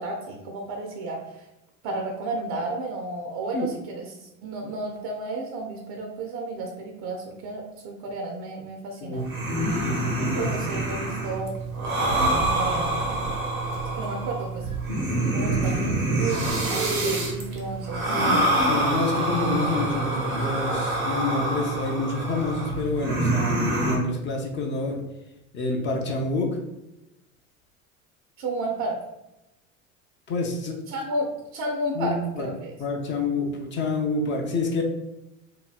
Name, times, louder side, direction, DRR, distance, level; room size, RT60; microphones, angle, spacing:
voice 1, 0.0-1.4 1.8-9.3 10.4-11.6 12.5-12.9 13.9-14.7 15.3-18.5 19.1-19.6 28.4-29.0 30.9-32.7, right 2 dB, 40° right, 1 dB, 0.5 m, -32 dB
sound 1, 9.1-24.0, right 2 dB, 80° right, 0.9 m, -26 dB
voice 2, 9.8-10.5 18.6-25.0 25.5-26.6 30.3-30.8 31.9-32.5 32.8-34.8, left 2 dB, 30° left, 0 dB, 0.5 m, -27 dB
2.8 x 2.7 x 2.3 m, 0.91 s
hypercardioid pair, 75°, 42 cm